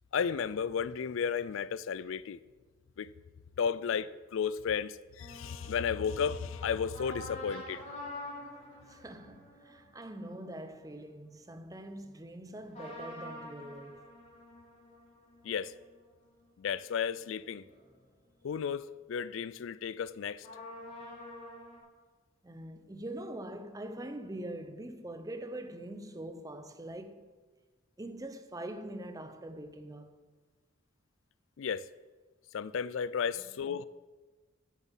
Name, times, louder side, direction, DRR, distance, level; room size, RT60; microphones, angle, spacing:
voice 1, 0.1-2.4 3.0-3.1 3.6-7.8 15.4-15.7 16.6-17.6 18.4-20.5 31.6-31.9 32.5-33.8, left 7 dB, 65° left, 0.4 m, -33 dB
sound 1, 5.2-11.1 12.7-18.0 18.4-18.5 20.4-21.8, left 1 dB, 35° left, 3.7 m, -48 dB
voice 2, 8.9-14.0 22.4-27.3 28.0-30.1 33.4-33.6, right 1 dB, 15° right, 0.6 m, -43 dB
7.9 x 7.2 x 7.2 m
head